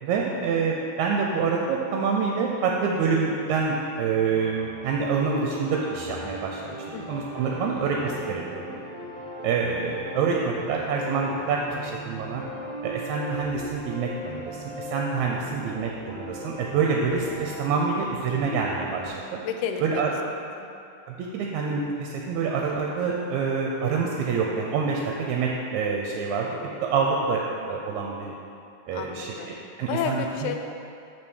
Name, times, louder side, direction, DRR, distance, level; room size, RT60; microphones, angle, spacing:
voice 1, 0.0-6.8 7.1-8.8 9.4-12.4 12.8-19.4 19.8-20.1 21.1-26.5 26.8-27.4 27.7-28.3 28.9-29.3 29.8-30.5, right 5 dB, 80° right, -1 dB, 1.9 m, -26 dB
sound 1, 4.3-19.1, equal, 50° left, 2.7 m, -38 dB
voice 2, 6.9-7.3 15.6-16.2 19.4-19.9 20.6-20.7 28.9-29.5 29.9-30.6, left 7 dB, 80° left, 4 dB, 2.0 m, -32 dB
6.1 x 4.5 x 6.3 m, 2.6 s
omnidirectional pair, 3.5 m